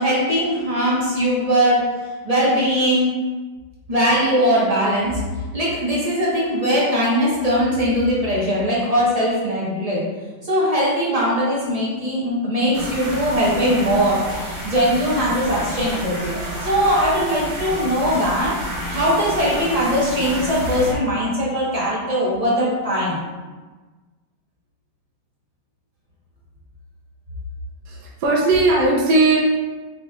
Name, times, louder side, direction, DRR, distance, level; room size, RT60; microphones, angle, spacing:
voice 1, 0.0-1.9 2.2-3.2 3.9-5.2 5.5-10.1 10.4-16.3 16.6-18.6 18.9-23.2, equal, 30° right, -7 dB, 0.7 m, -20 dB
sound 1, 12.7-20.9, right 1 dB, 90° right, 2.0 m, -30 dB
voice 2, 27.9-29.4, right 2 dB, 65° right, -4 dB, 1.1 m, -17 dB
4.3 x 4.1 x 2.3 m, 1.3 s
omnidirectional pair, 2.2 m